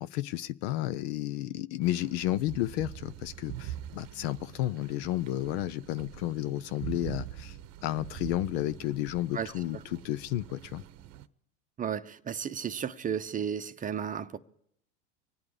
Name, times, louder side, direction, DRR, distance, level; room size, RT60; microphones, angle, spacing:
voice 1, 0.0-7.6 7.8-10.8, left 15 dB, 65° left, 0.6 m, -32 dB
sound 1, 1.8-11.3, right 12 dB, 50° right, 0.8 m, -44 dB
voice 2, 11.8-14.4, right 8 dB, 25° right, 0.7 m, -33 dB
25.0 x 8.7 x 4.9 m
supercardioid pair, 100°, 34 cm